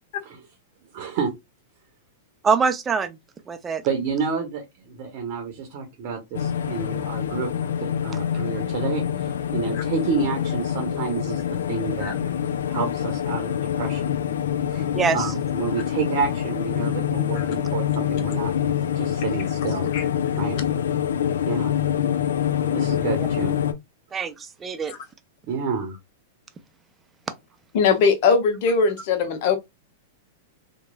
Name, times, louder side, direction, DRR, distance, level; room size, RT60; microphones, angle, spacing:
voice 1, 0.9-1.3 3.8-7.5 7.8-11.4 11.7-12.3 12.7-14.1 14.7-14.9 15.1-18.5 18.9-19.9 20.4-20.6 21.4-21.7 22.7-23.6 25.5-26.0, right 5 dB, 50° right, 0.8 m, -29 dB
voice 2, 2.4-3.2 3.5-3.8 14.9-15.3 20.5-20.6 24.1-24.9, right 5 dB, 20° right, 0.4 m, -24 dB
sound 1, 6.3-23.7, left 9 dB, 75° left, 0.3 m, -26 dB
voice 3, 27.7-29.6, left 5 dB, 55° left, 0.7 m, -20 dB
3.0 x 2.2 x 2.2 m
hypercardioid pair, 110°, 0 cm